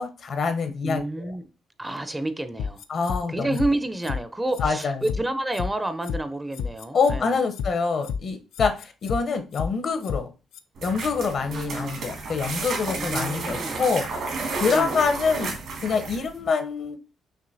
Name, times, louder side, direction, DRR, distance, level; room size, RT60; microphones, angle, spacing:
voice 1, 0.0-1.2 2.9-3.5 4.6-5.0 6.9-10.3 10.8-14.0 14.6-15.6 15.8-17.0, left 5 dB, 55° left, 0.7 m, -25 dB
voice 2, 0.8-1.4 1.8-2.8 3.3-7.3 11.5-12.0 12.9-13.8 14.7-15.0, right 1 dB, 15° right, 0.5 m, -29 dB
sound 1, 2.6-3.2 3.5-3.7 4.0-4.2 4.5-5.2 5.5-5.7 6.0-6.2 6.5-7.2 7.5-7.7 8.0-8.2 8.5-9.2 9.5-9.7 10.0-10.2 10.5-10.6, left 6 dB, 85° left, 0.4 m, -29 dB
sound 2, 10.8-16.4, right 3 dB, 70° right, 1.6 m, -32 dB
6.1 x 2.6 x 2.6 m
cardioid pair, 90°, 0 cm